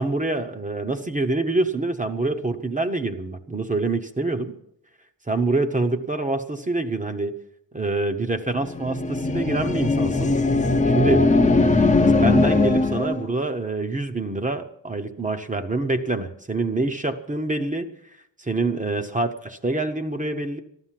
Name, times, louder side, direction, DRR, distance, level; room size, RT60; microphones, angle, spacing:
voice 1, 0.0-4.5 5.3-7.4 7.7-10.3 10.8-11.3 12.1-17.9 18.4-20.6, right 2 dB, 20° right, 7 dB, 0.7 m, -26 dB
sound 1, 8.6-13.3, left 3 dB, 15° left, 0.6 m, -20 dB
14.5 x 11.5 x 7.4 m, 0.75 s
wide cardioid pair, 170°, 43 cm